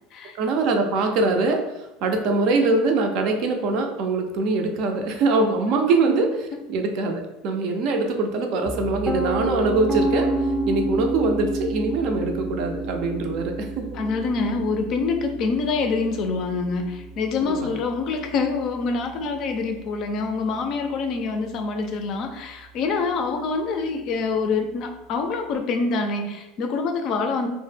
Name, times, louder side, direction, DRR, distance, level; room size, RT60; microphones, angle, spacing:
voice 1, 0.3-10.3 10.7-13.9, right 3 dB, 60° right, 4 dB, 0.4 m, -23 dB
Piano, 8.7-20.6, right 1 dB, 5° right, 0.5 m, -30 dB
voice 2, 13.9-27.5, left 4 dB, 55° left, 5 dB, 0.4 m, -26 dB
2.0 x 2.0 x 3.2 m, 0.98 s
hypercardioid pair, 95°, 0 cm